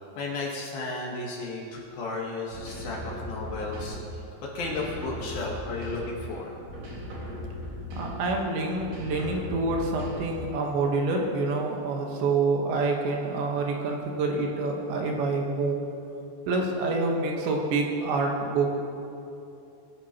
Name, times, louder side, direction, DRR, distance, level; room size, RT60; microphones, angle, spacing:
voice 1, 0.2-4.0 4.5-6.5, left 2 dB, 65° left, -3 dB, 2.8 m, -33 dB
sound 1, 2.5-4.2 4.6-6.3 6.7-8.4 8.8-10.5, left 1 dB, 45° right, 2.3 m, -38 dB
voice 2, 8.0-15.8 16.5-18.8, right 3 dB, 75° right, 0 dB, 3.4 m, -27 dB
21.0 x 10.5 x 2.9 m, 2.8 s
omnidirectional pair, 5.3 m